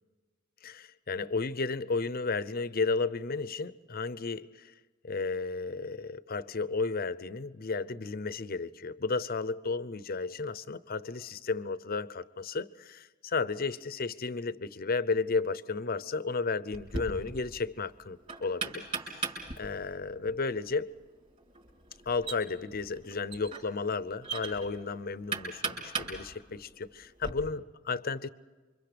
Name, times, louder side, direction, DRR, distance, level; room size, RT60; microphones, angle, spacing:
voice 1, 0.6-4.7 5.0-18.8 19.1-19.3 19.6-20.9 22.1-28.3, left 4 dB, 45° left, 0.7 m, -33 dB
Knock, 16.7-27.3, right 4 dB, 35° right, 5.3 m, -40 dB
29.0 x 25.0 x 5.2 m
head